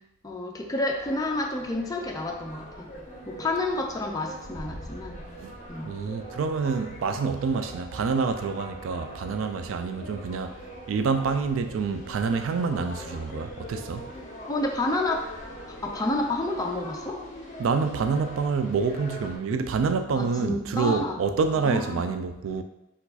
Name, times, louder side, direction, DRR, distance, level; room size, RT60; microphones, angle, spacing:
voice 1, 0.2-2.9 3.3-5.2 5.7-6.0 14.5-15.2 15.7-17.2 20.1-21.2 21.5-22.1, left 2 dB, 20° left, 0.5 m, -29 dB
sound 1, 0.9-19.4, equal, 35° left, 0.9 m, -42 dB
voice 2, 5.8-10.6 10.9-14.1 17.6-22.6, right 5 dB, 75° right, 0.3 m, -27 dB
4.5 x 2.4 x 4.0 m
head